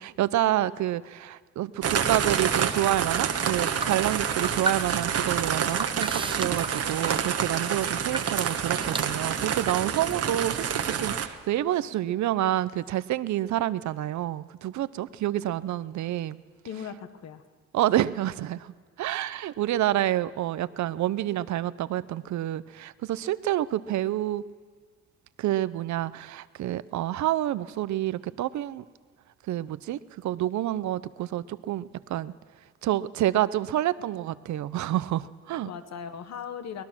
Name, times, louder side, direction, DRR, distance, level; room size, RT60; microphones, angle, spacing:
voice 1, 0.0-16.4 17.7-18.7 19.0-24.4 25.4-28.8 29.5-32.3 32.8-35.7, right 13 dB, 70° right, 17 dB, 0.7 m, -28 dB
sound 1, 1.8-11.3, right 7 dB, 50° right, 1.3 m, -28 dB
sound 2, 1.9-11.2, right 3 dB, 15° right, 0.8 m, -38 dB
voice 2, 16.6-17.4 35.6-36.8, left 7 dB, 60° left, 10 dB, 1.4 m, -38 dB
23.0 x 19.0 x 6.1 m, 1.5 s
cardioid pair, 90°, 30 cm